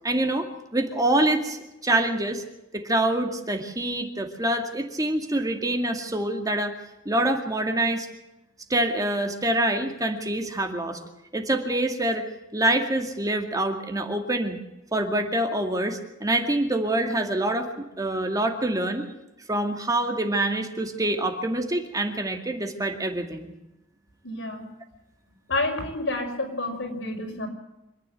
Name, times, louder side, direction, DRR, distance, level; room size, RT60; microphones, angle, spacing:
voice 1, 0.0-2.4 2.7-6.7 7.1-8.1 8.7-11.0 11.3-12.2 12.5-14.6 14.9-19.1 19.5-23.5, right 1 dB, 20° right, 4 dB, 2.2 m, -26 dB
voice 2, 24.2-24.7 25.5-27.5, left 2 dB, 70° left, 2 dB, 5.7 m, -29 dB
26.0 x 11.0 x 9.3 m, 0.95 s
head